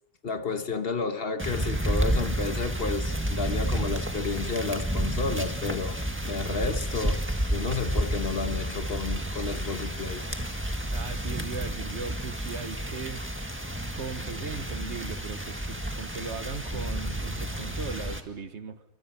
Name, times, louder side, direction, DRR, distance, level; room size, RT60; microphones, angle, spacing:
voice 1, 0.2-6.0 6.2-7.2 7.5-10.3, left 4 dB, 55° left, 1.4 m, -31 dB
sound 1, 1.4-18.2, right 1 dB, 10° right, 1.7 m, -30 dB
voice 2, 10.9-13.2 13.9-18.8, right 5 dB, 65° right, 1.5 m, -38 dB
29.0 x 25.0 x 5.9 m
omnidirectional pair, 1.3 m